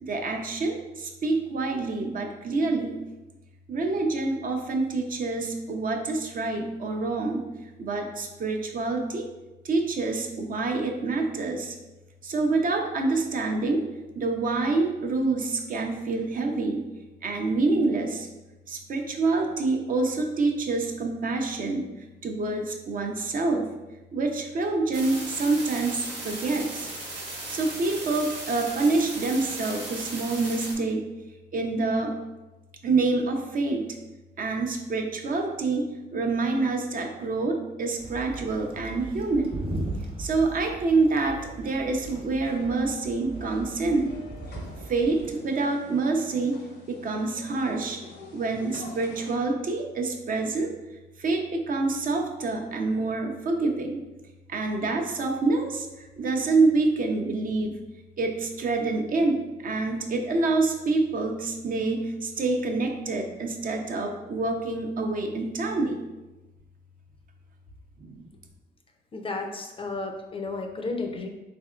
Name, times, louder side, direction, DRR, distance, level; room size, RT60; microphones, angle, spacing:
voice 1, 0.0-3.0 3.7-7.4 7.8-9.3 9.6-11.7 12.2-13.8 14.1-16.8 17.2-18.3 18.7-21.8 22.2-23.7 24.1-26.9 27.5-31.0 31.5-32.1 32.8-33.9 34.4-39.5 40.2-44.1 44.9-46.6 46.9-48.0 48.3-50.7 51.2-54.0 54.5-55.9 56.2-57.7 58.2-66.0 68.0-68.2, right 3 dB, 50° right, 3 dB, 0.5 m, -27 dB
sound 1, 24.9-30.7, right 2 dB, 90° right, 1.1 m, -37 dB
sound 2, 38.0-45.3, right 2 dB, 30° right, 0.9 m, -38 dB
sound 3, 43.3-49.4, left 3 dB, 70° left, 0.7 m, -47 dB
voice 2, 69.1-71.3, left 3 dB, 30° left, 4 dB, 0.4 m, -32 dB
3.6 x 3.3 x 2.4 m, 1.1 s
cardioid pair, 85°, 19 cm